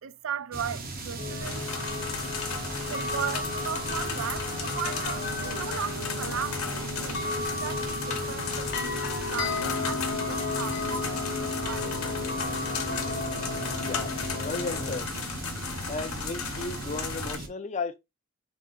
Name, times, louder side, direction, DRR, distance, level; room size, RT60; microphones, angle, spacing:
voice 1, 0.0-1.8 2.8-9.0 9.3-11.9, right 8 dB, 70° right, 0.4 m, -37 dB
sound 1, 0.5-17.5, right 2 dB, 45° right, 0.9 m, -38 dB
sound 2, 1.2-15.0, left 3 dB, 55° left, 1.0 m, -34 dB
sound 3, 1.4-17.3, left 6 dB, 90° left, 1.0 m, -36 dB
voice 2, 14.4-15.1 15.9-18.0, left 3 dB, 35° left, 0.5 m, -34 dB
4.0 x 2.8 x 3.7 m
head